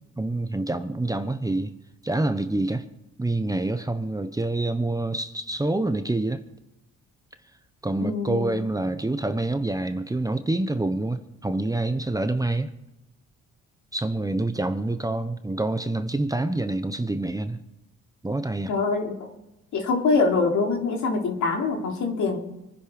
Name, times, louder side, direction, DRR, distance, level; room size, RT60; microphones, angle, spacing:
voice 1, 0.2-1.7 2.0-2.8 3.2-6.4 7.8-12.7 13.9-17.6 18.2-18.7, right 2 dB, 10° right, 0.9 m, -27 dB
voice 2, 8.0-8.5 18.7-19.3 19.7-22.4, left 4 dB, 75° left, 3.0 m, -24 dB
23.5 x 10.5 x 5.1 m
cardioid pair, 90°, 30 cm